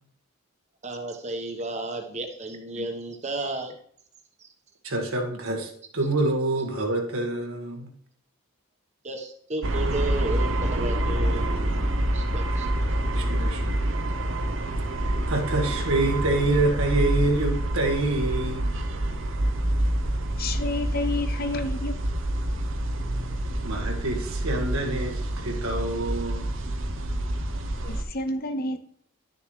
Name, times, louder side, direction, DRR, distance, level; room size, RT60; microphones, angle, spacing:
voice 1, 0.8-3.7 9.0-11.5 12.1-12.7, right 2 dB, 30° right, 1.2 m, -33 dB
voice 2, 4.8-7.9 13.1-13.7 15.0-18.6 23.6-26.5, right 2 dB, 80° right, 1.7 m, -27 dB
sound 1, 9.6-28.0, right 1 dB, 60° right, 0.8 m, -27 dB
voice 3, 20.3-22.0 27.8-28.8, left 2 dB, 45° left, 0.7 m, -30 dB
11.5 x 6.9 x 3.2 m
head